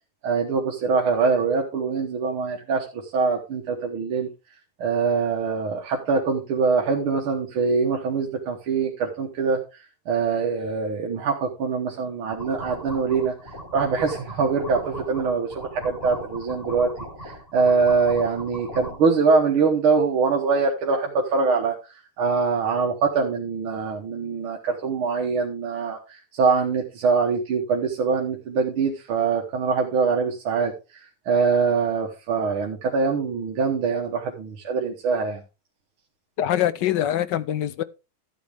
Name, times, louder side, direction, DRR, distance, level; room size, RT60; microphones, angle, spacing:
voice 1, 0.2-4.3 4.8-16.9 17.2-35.4, right 5 dB, 85° right, 2.2 m, -23 dB
sound 1, 12.3-19.0, equal, 25° left, 4.6 m, -38 dB
voice 2, 36.4-37.8, left 11 dB, 70° left, 1.2 m, -23 dB
13.0 x 8.5 x 3.4 m
omnidirectional pair, 2.2 m